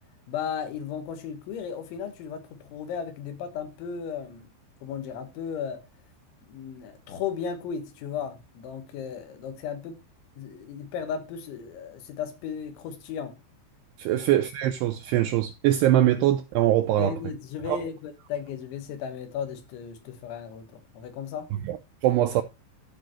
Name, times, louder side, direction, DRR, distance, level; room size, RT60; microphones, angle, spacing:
voice 1, 0.3-4.5 4.8-5.8 6.5-10.0 10.4-13.4 14.1-14.2 17.0-21.5, left 7 dB, 80° left, 3.6 m, -35 dB
voice 2, 14.0-17.1 17.6-17.8 21.6-21.8 22.0-22.4, right 13 dB, 90° right, 2.3 m, -22 dB
14.0 x 5.0 x 3.0 m
omnidirectional pair, 5.4 m